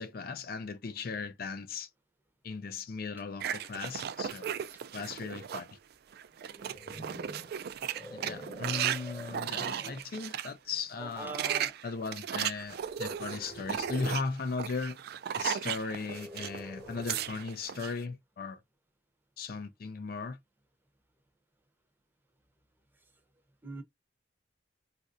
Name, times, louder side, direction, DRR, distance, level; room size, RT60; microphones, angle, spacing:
voice 1, 0.0-1.9 2.4-4.5 4.9-5.7 8.1-11.4 11.8-15.0 15.4-18.6 19.4-20.4, left 4 dB, 55° left, 0.4 m, -37 dB
sound 1, 3.4-5.7 6.1-10.5 11.1-16.6 16.9-17.9, right 9 dB, 60° right, 0.3 m, -36 dB
sound 2, 6.4-10.1 10.7-11.0 12.7-14.3 15.9-17.4, equal, 15° left, 1.0 m, -47 dB
voice 2, 9.5-9.9 11.0-11.7 23.6-23.8, right 3 dB, 10° right, 0.7 m, -42 dB
4.2 x 2.5 x 2.5 m
head